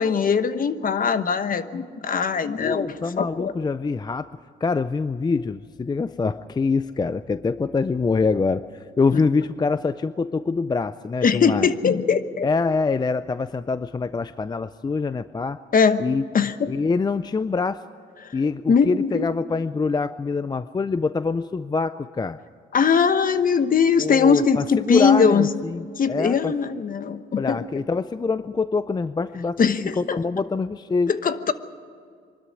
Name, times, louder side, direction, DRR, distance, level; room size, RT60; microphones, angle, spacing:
voice 1, 0.0-2.9 3.2-3.5 9.1-9.2 11.2-12.5 15.7-16.0 16.3-16.7 18.2-18.3 18.7-19.3 22.7-25.5 26.0-27.7 29.6-30.2 31.1-31.5, left 6 dB, 45° left, 11 dB, 1.1 m, -21 dB
voice 2, 2.6-4.3 4.6-8.7 9.0-11.7 12.4-15.6 16.0-16.2 16.7-17.8 18.3-22.4 24.0-26.5 27.4-31.2, left 4 dB, 20° left, 14 dB, 0.4 m, -25 dB
24.0 x 12.5 x 9.7 m, 2.2 s
cardioid pair, 90°, 20 cm